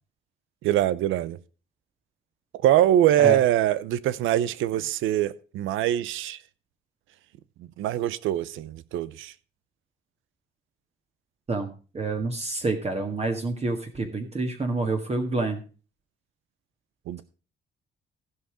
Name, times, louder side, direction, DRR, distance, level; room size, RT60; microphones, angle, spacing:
voice 1, 0.6-1.4 2.6-6.4 7.8-9.3 17.1-17.2, right 12 dB, 90° right, 0.7 m, -23 dB
voice 2, 11.9-15.6, right 2 dB, 30° right, 1.7 m, -28 dB
15.5 x 5.7 x 5.0 m
cardioid pair, 90°, 20 cm